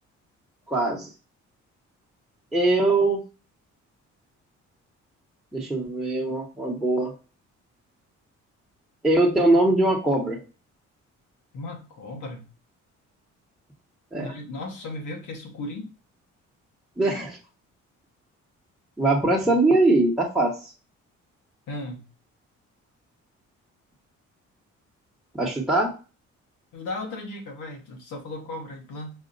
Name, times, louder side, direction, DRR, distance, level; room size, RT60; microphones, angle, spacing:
voice 1, 0.7-1.1 2.5-3.2 5.5-7.1 9.0-10.4 14.1-14.3 17.0-17.4 19.0-20.7 25.3-25.9, right 2 dB, ahead, -4 dB, 1.3 m, -22 dB
voice 2, 11.5-12.4 14.2-15.9 21.7-22.0 26.7-29.1, left 2 dB, 85° left, 1 dB, 1.4 m, -36 dB
5.1 x 2.5 x 2.6 m, 0.33 s
cardioid pair, 90°, 30 cm